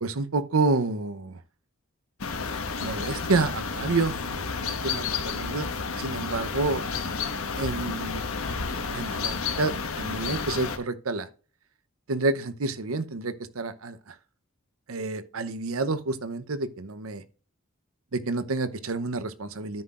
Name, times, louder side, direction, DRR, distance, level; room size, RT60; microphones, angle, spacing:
voice 1, 0.0-1.4 2.8-5.7 6.0-6.9 7.6-8.2 8.9-11.3 12.1-14.1 14.9-17.2 18.1-19.8, right 3 dB, 80° right, 0.8 m, -29 dB
sound 1, 2.2-10.8, left 5 dB, 80° left, 1.2 m, -31 dB
13.5 x 5.8 x 2.5 m
head